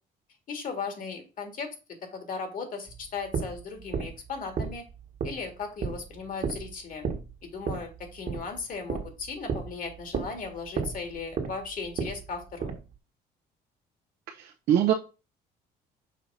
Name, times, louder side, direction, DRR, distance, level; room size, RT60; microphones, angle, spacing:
voice 1, 0.5-1.7 2.0-4.9 5.2-7.1 7.4-12.7, left 5 dB, 55° left, 5 dB, 1.9 m, -37 dB
sound 1, 2.9-12.9, right 5 dB, 45° right, 1.5 m, -34 dB
voice 2, 14.3-14.9, right 10 dB, 70° right, 1 dB, 0.8 m, -24 dB
6.3 x 2.9 x 5.4 m, 0.31 s
cardioid pair, 110°, 17 cm